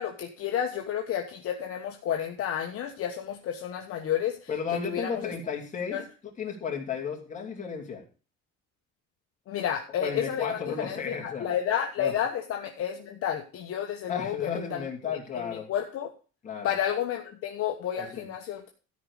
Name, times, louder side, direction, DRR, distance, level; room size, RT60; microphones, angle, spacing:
voice 1, 0.0-5.3 5.9-6.0 9.5-16.1 16.6-18.7, left 9 dB, 50° left, 2 dB, 1.2 m, -31 dB
voice 2, 4.5-6.0 6.4-8.0 10.0-11.4 12.0-12.1 14.1-15.7 16.4-16.7 18.1-18.3, left 6 dB, 25° left, 0 dB, 2.9 m, -33 dB
13.5 x 5.3 x 6.4 m, 0.36 s
cardioid pair, 175°, 30 cm